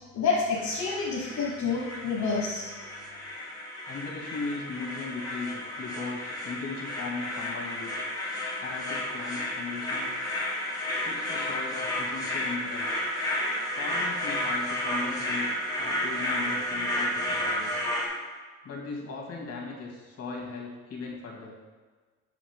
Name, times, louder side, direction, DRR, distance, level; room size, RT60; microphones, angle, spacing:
voice 1, 0.1-2.7, left 4 dB, 70° left, -5 dB, 1.2 m, -28 dB
sound 1, 0.6-18.1, left 1 dB, 10° left, 1.9 m, -32 dB
voice 2, 3.9-7.9 8.4-10.2 10.9-13.1 13.8-17.8 18.6-21.5, left 4 dB, 55° left, -1 dB, 2.0 m, -38 dB
7.0 x 4.9 x 3.6 m, 1.4 s
cardioid pair, 90°, 30 cm